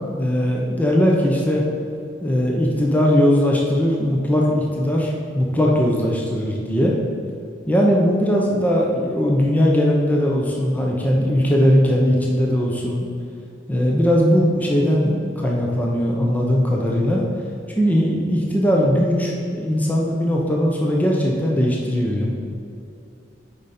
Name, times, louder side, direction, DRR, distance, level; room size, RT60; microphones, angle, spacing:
voice 1, 0.1-1.6 2.2-7.0 7.7-13.1 13.7-17.2 17.7-22.3, equal, 10° left, -2 dB, 0.8 m, -19 dB
8.4 x 5.4 x 4.3 m, 2.5 s
head